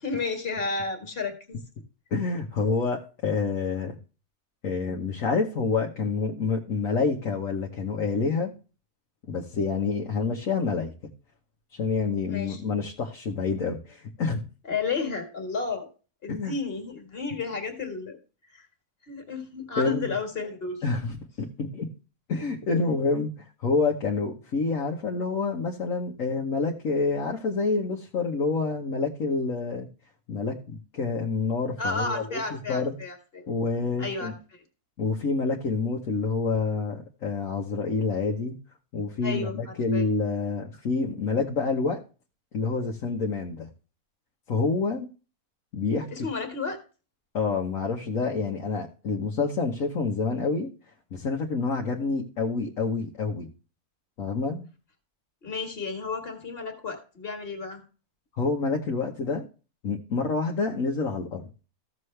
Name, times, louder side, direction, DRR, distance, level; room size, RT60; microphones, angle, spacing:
voice 1, 0.0-1.6 12.3-12.6 14.6-15.9 16.2-18.2 18.5-18.7 19.0-20.8 31.8-33.5 34.0-34.6 39.2-40.1 46.1-46.8 55.4-57.8, left 4 dB, 40° left, 5 dB, 2.1 m, -32 dB
voice 2, 2.1-4.0 4.6-8.5 9.3-10.9 11.7-14.4 16.3-16.5 19.8-20.1 20.8-21.9 22.3-23.3 23.6-29.9 30.3-32.4 32.7-32.9 33.5-34.3 35.0-38.5 38.9-42.0 42.5-43.7 44.5-45.1 45.7-46.2 47.3-50.7 51.1-53.5 54.2-54.7 58.4-59.4 59.8-61.5, left 4 dB, 60° left, 0 dB, 1.5 m, -27 dB
14.5 x 6.7 x 3.3 m, 0.34 s
omnidirectional pair, 1.6 m